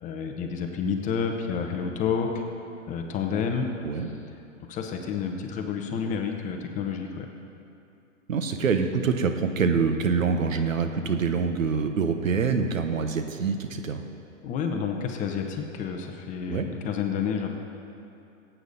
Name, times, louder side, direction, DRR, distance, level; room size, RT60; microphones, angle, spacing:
voice 1, 0.0-2.3 2.9-3.6 4.0-4.1 4.7-7.3 14.4-17.6, left 6 dB, 20° left, 3 dB, 0.8 m, -29 dB
voice 2, 8.3-14.0 16.5-16.7, right 5 dB, 85° right, 7 dB, 1.1 m, -25 dB
15.5 x 8.5 x 4.0 m, 2.6 s
hypercardioid pair, 135°, 39 cm